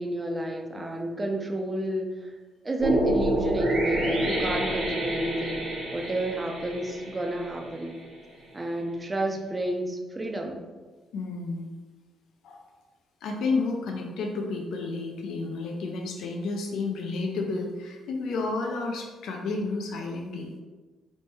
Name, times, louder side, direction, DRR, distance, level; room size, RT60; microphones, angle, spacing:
voice 1, 0.0-2.3 2.6-5.6 5.9-8.0 8.5-10.6, right 1 dB, 15° right, 3 dB, 0.3 m, -30 dB
sound 1, 2.8-8.0, right 1 dB, 90° right, 1.0 m, -28 dB
voice 2, 11.1-11.7 12.4-12.6 13.2-20.5, left 3 dB, 75° left, 1 dB, 0.4 m, -31 dB
3.0 x 2.0 x 3.3 m, 1.3 s
cardioid pair, 160°, 0 cm